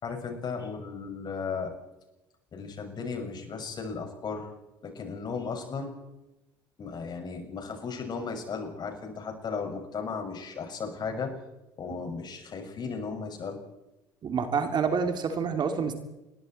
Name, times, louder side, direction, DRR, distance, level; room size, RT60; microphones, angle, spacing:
voice 1, 0.0-1.7 2.5-4.5 4.8-5.9 6.8-11.4 11.8-13.6, left 5 dB, 40° left, 4 dB, 6.8 m, -35 dB
voice 2, 14.2-16.0, right 6 dB, 40° right, 6 dB, 3.3 m, -27 dB
29.0 x 22.0 x 4.6 m, 0.98 s
hypercardioid pair, 65°, 11 cm